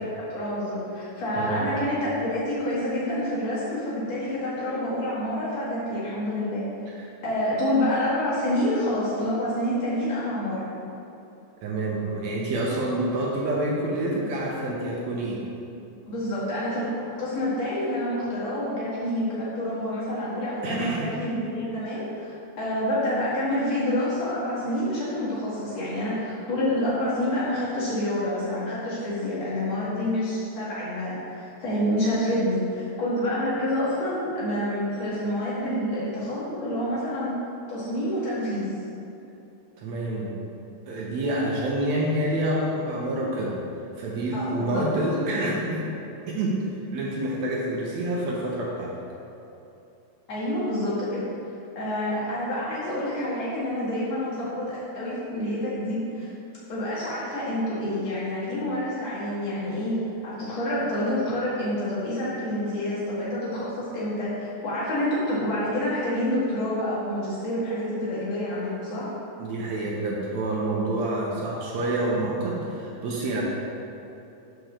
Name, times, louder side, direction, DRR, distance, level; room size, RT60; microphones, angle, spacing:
voice 1, 0.0-6.6 7.2-10.6 16.1-16.9 17.1-37.4 37.7-38.7 44.3-44.9 50.3-51.3 51.8-56.3 56.7-69.1, left 1 dB, 55° left, -9 dB, 3.0 m, -28 dB
voice 2, 1.4-1.7 11.6-15.4 20.6-21.1 39.8-40.4 40.9-43.6 44.0-45.8 46.3-46.6 46.9-49.0 69.4-73.4, right 1 dB, 70° right, -3 dB, 1.9 m, -27 dB
5.9 x 5.2 x 6.6 m, 2.8 s
omnidirectional pair, 3.6 m